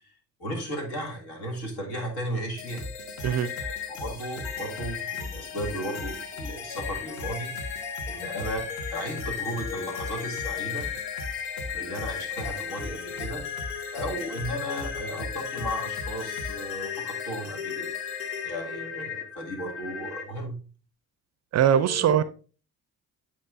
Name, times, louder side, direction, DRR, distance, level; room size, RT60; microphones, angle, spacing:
voice 1, 0.4-2.8 3.9-10.9 11.7-13.4 13.9-17.9 18.4-20.6 21.7-22.2, equal, 65° left, 2.0 m, -35 dB
sound 1, 2.6-20.2, left 7 dB, 80° left, 0.9 m, -35 dB
sound 2, 2.6-16.7, left 1 dB, 40° left, 1.4 m, -40 dB
voice 2, 21.5-22.3, right 9 dB, 40° right, 0.4 m, -21 dB
8.5 x 5.1 x 2.5 m
hypercardioid pair, 50°, 44 cm